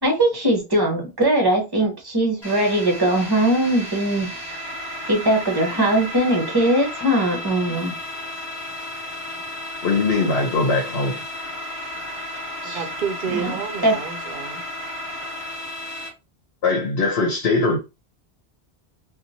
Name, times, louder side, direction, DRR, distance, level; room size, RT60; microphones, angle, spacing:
voice 1, 0.0-4.3 5.1-7.9 12.6-12.8 13.3-13.9, right 1 dB, 25° right, 0.8 m, -20 dB
sound 1, 2.4-16.1, left 1 dB, 25° left, 1.2 m, -33 dB
voice 2, 9.8-11.2 16.6-17.8, left 3 dB, 80° left, 1.0 m, -21 dB
voice 3, 12.6-14.6, right 6 dB, 60° right, 0.7 m, -29 dB
2.9 x 2.4 x 2.7 m
omnidirectional pair, 1.1 m